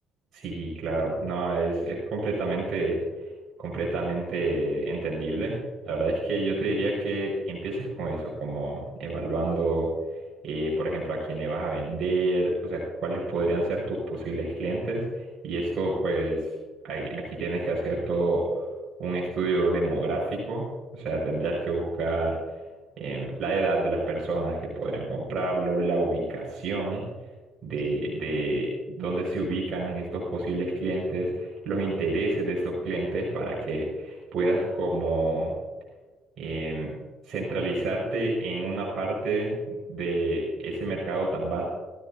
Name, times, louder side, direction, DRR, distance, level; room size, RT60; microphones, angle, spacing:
voice 1, 0.3-3.0 3.6-5.6 5.8-9.9 10.4-16.5 16.8-18.7 19.0-20.6 20.9-22.4 23.0-27.0 27.6-35.5 36.4-36.9 37.2-39.6 39.9-41.6, right 2 dB, 55° right, -3 dB, 6.0 m, -28 dB
21.0 x 15.0 x 2.9 m, 1.2 s
hypercardioid pair, 55°, 0 cm